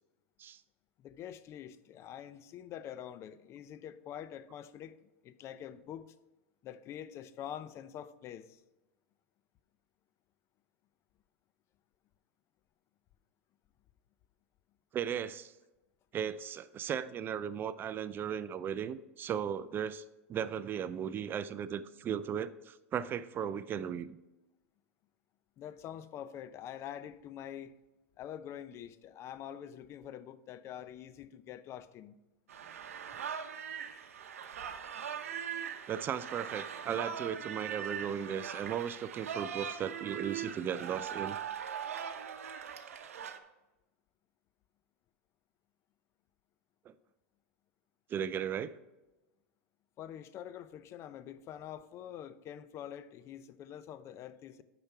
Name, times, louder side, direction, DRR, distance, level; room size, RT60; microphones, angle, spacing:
voice 1, 1.0-5.0 5.2-6.1 6.6-8.6 25.6-27.8 28.2-32.1 50.0-54.6, left 10 dB, 35° left, 0.5 m, -45 dB
voice 2, 14.9-15.5 16.1-20.0 20.3-24.2 35.9-41.4 46.9-47.0 48.1-48.7, right 8 dB, 30° right, 0.3 m, -36 dB
sound 1, 32.5-43.4, right 8 dB, 90° right, 0.8 m, -41 dB
6.9 x 5.9 x 5.7 m
hypercardioid pair, 115°, 8 cm